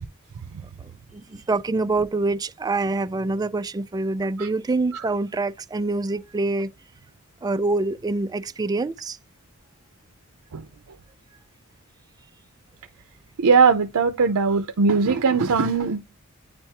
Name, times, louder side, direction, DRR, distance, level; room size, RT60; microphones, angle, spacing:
voice 1, 0.8-6.7 7.4-9.2, right 3 dB, 15° right, 0.3 m, -26 dB
voice 2, 13.4-16.0, right 5 dB, 90° right, 0.5 m, -20 dB
9.6 x 3.4 x 2.9 m
head